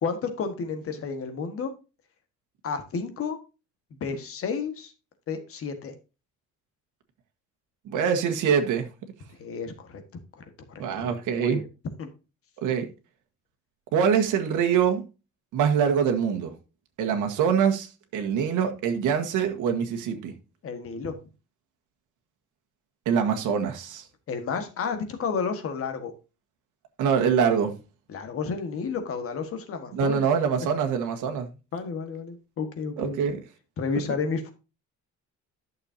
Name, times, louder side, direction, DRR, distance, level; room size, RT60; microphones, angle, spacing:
voice 1, 0.0-1.7 2.6-3.4 3.9-4.9 5.3-5.9 9.4-10.0 10.4-11.6 12.0-12.1 20.6-21.2 24.3-26.1 28.1-30.3 31.7-33.2 33.8-34.5, left 5 dB, 45° left, 1.6 m, -31 dB
voice 2, 7.8-8.9 10.8-11.6 12.6-12.9 13.9-15.0 15.5-16.5 17.0-17.9 18.1-20.3 23.0-24.0 27.0-27.8 29.9-31.5 33.0-33.4, right 7 dB, 80° right, 1.6 m, -24 dB
11.5 x 6.6 x 2.8 m
cardioid pair, 165°, 30 cm